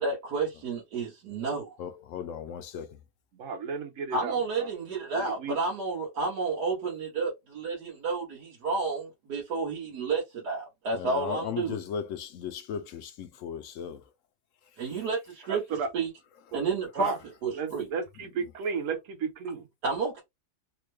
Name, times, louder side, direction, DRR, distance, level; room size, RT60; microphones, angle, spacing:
voice 1, 0.0-1.8 4.1-11.8 14.8-16.1 16.5-17.1 17.4-17.9 19.8-20.2, right 4 dB, 85° right, 1.7 m, -31 dB
voice 2, 1.8-2.9 10.9-14.0, left 8 dB, 70° left, 0.8 m, -36 dB
voice 3, 3.3-4.7 5.1-5.6 15.5-15.9 16.5-16.6 17.0-17.2 17.6-19.7, right 5 dB, 55° right, 1.1 m, -34 dB
3.6 x 2.2 x 3.1 m
omnidirectional pair, 1.7 m